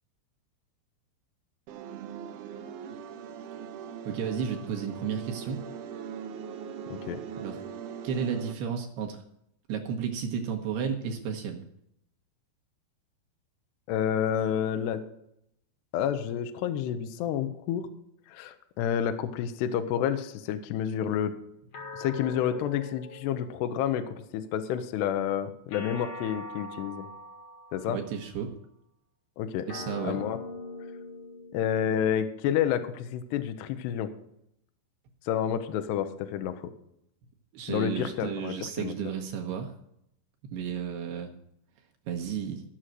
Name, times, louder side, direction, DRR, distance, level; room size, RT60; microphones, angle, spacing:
sound 1, 1.7-8.5, right 7 dB, 90° right, 2.3 m, -41 dB
voice 1, 4.1-5.6 7.4-7.6 8.0-9.2 9.7-11.6 27.9-28.5 29.7-30.2 37.5-39.7 40.5-41.3 42.1-42.6, right 7 dB, 70° right, 2 dB, 2.6 m, -32 dB
voice 2, 6.9-7.2 13.9-15.0 15.9-17.9 18.3-21.3 21.9-27.1 27.7-28.0 29.4-29.7 30.0-30.4 31.5-34.1 35.3-36.6 37.7-38.9, left 9 dB, 80° left, 8 dB, 2.5 m, -29 dB
sound 2, 21.7-24.3 25.7-28.3 29.7-32.3, left 2 dB, 55° left, 1.8 m, -43 dB
15.0 x 6.4 x 7.6 m, 0.76 s
omnidirectional pair, 5.8 m